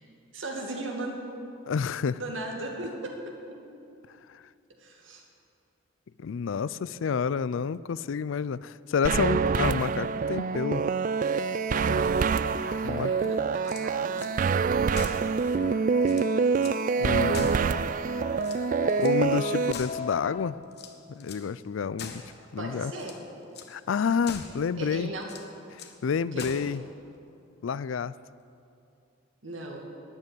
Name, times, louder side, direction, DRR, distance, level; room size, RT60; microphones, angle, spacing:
voice 1, 0.3-1.2 2.2-3.2 3.5-3.6 4.8-5.2 12.6-14.3 22.6-23.2 24.8-25.3 26.3-26.5 29.4-29.9, right 2 dB, 75° right, 1 dB, 2.3 m, -37 dB
voice 2, 1.7-2.2 4.1-4.4 6.2-10.8 12.8-13.3 17.0-17.5 19.0-20.6 21.1-22.2 22.5-22.9 23.7-25.1 25.7-26.8 27.6-28.1, left 6 dB, 80° left, 18 dB, 0.4 m, -29 dB
sound 1, 9.0-19.7, right 5 dB, 40° right, 0.3 m, -26 dB
sound 2, 9.7-20.5, left 6 dB, 35° left, 0.6 m, -39 dB
sound 3, 13.5-14.3 14.9-15.3 15.7-15.8 16.0-16.8 17.3-18.0 18.4-19.2 19.7-20.3 20.7-21.5 22.0-22.4 22.9-23.2 23.5-23.7 24.2-24.7 25.2-26.0 26.4-26.8, left 5 dB, 55° left, 1.2 m, -43 dB
12.5 x 9.1 x 9.5 m, 2.6 s
head